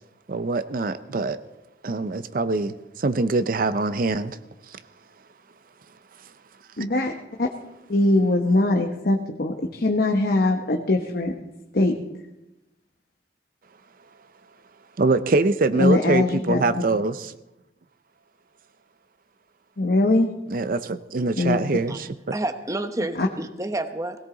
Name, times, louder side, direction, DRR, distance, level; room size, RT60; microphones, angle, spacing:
voice 1, 0.3-1.4 1.8-4.4 4.7-4.8 15.0-17.3 20.5-22.1, right 3 dB, 50° right, 11 dB, 0.6 m, -24 dB
voice 2, 6.8-7.1 7.4-7.5 7.9-11.3 11.7-11.9 15.8-16.6 19.8-20.3 21.4-21.6 23.2-23.3, left 2 dB, 60° left, 2 dB, 1.1 m, -21 dB
voice 3, 22.3-24.2, right 1 dB, 20° right, 8 dB, 1.0 m, -29 dB
19.5 x 17.5 x 3.9 m, 0.94 s
head